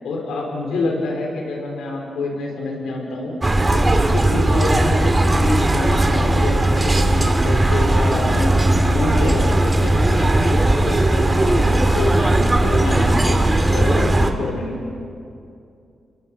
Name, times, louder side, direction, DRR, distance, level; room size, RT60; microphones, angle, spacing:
voice 1, 0.0-3.3 3.7-8.5 8.8-13.4 13.7-14.7, left 2 dB, 85° left, 0 dB, 5.0 m, -26 dB
sound 1, 3.4-14.3, right 1 dB, 25° right, 2.6 m, -17 dB
29.5 x 22.0 x 5.7 m, 2.5 s
supercardioid pair, 50°, 0 cm